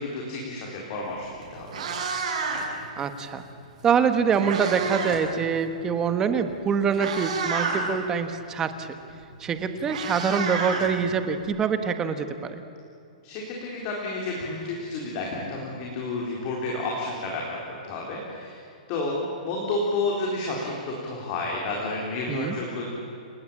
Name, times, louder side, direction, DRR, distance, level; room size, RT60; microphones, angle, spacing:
voice 1, 0.0-1.7 13.2-18.6 18.9-22.9, left 2 dB, 30° left, -2 dB, 4.1 m, -31 dB
Meow, 1.1-1.2 1.6-2.8 3.9-5.2 5.5-5.8 6.5-6.6 6.9-7.9 9.2-9.3 9.5-11.4, right 4 dB, 60° right, 7.0 m, -30 dB
voice 2, 3.0-3.4 3.8-8.9 9.4-12.5 22.3-22.6, right 6 dB, 15° right, 9 dB, 1.2 m, -25 dB
29.0 x 18.5 x 8.7 m, 2.7 s
hypercardioid pair, 170°, 4 cm